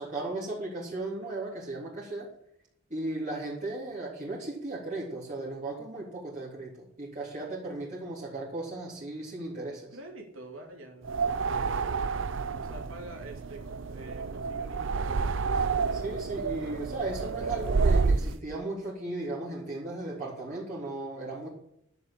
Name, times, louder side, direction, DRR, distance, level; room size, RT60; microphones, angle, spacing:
voice 1, 0.0-2.3 2.9-9.9 15.9-21.5, right 2 dB, 40° right, -6 dB, 3.5 m, -36 dB
voice 2, 9.9-11.5 12.5-15.7, right 1 dB, 85° right, 1 dB, 3.2 m, -47 dB
sound 1, 11.0-18.4, right 4 dB, 65° right, 0.6 m, -29 dB
12.0 x 7.0 x 8.8 m, 0.74 s
head